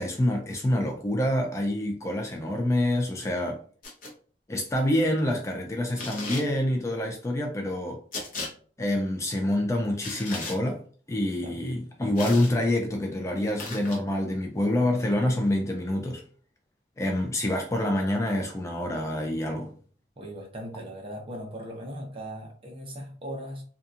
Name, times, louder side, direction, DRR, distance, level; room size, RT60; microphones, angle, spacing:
voice 1, 0.0-3.6 4.5-8.0 8.8-10.8 11.1-16.2 17.0-19.7, left 1 dB, 15° left, 0.3 m, -27 dB
sound 1, 3.8-4.1 6.0-6.5 8.1-8.5 10.0-10.6 12.2-12.5 13.6-14.0, left 3 dB, 50° left, 0.7 m, -36 dB
voice 2, 20.2-23.6, equal, 30° right, 0.7 m, -38 dB
2.7 x 2.3 x 2.4 m
head